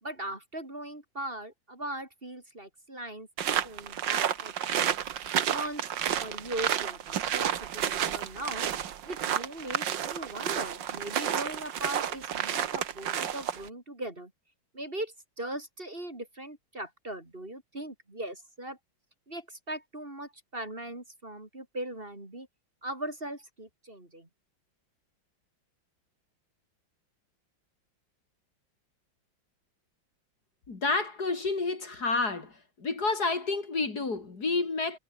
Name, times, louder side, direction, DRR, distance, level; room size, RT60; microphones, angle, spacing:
voice 1, 0.0-5.0 5.5-5.8 6.1-8.7 9.0-14.3 14.7-18.8 19.3-22.5 22.8-24.3, right 1 dB, 25° right, 3.8 m, -39 dB
sound 1, 3.4-13.7, right 10 dB, 65° right, 1.9 m, -31 dB
voice 2, 30.7-32.5 32.8-35.0, left 3 dB, 50° left, 3.6 m, -29 dB
omnidirectional pair, 2.2 m